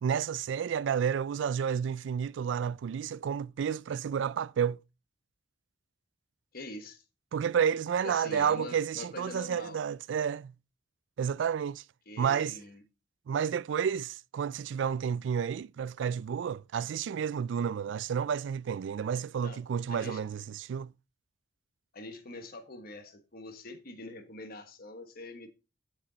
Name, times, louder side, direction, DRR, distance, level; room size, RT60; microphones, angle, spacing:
voice 1, 0.0-4.8 7.3-10.5 11.2-11.8 12.2-12.5 13.3-20.9, right 7 dB, 70° right, 0.3 m, -31 dB
voice 2, 6.5-7.0 8.0-9.8 12.1-12.8 19.4-19.6 19.9-20.2 21.9-25.5, left 2 dB, 55° left, 1.3 m, -44 dB
9.9 x 5.5 x 3.9 m
head